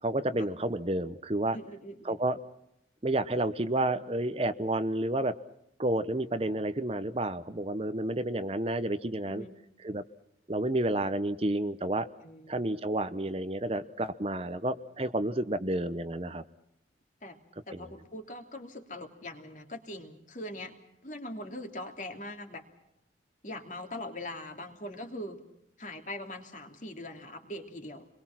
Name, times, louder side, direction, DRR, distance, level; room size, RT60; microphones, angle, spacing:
voice 1, 0.0-1.6 2.0-2.4 3.0-5.3 5.8-9.4 9.8-10.0 10.5-12.1 12.5-16.4 17.7-17.8, right 1 dB, 35° right, 11 dB, 0.9 m, -30 dB
voice 2, 1.5-2.2 6.4-6.6 9.3-9.5 12.2-12.6 17.2-17.4 17.7-20.7 21.0-22.6 23.4-25.4 25.8-28.1, left 1 dB, 45° left, 4 dB, 3.1 m, -41 dB
28.0 x 22.0 x 6.0 m, 0.79 s
head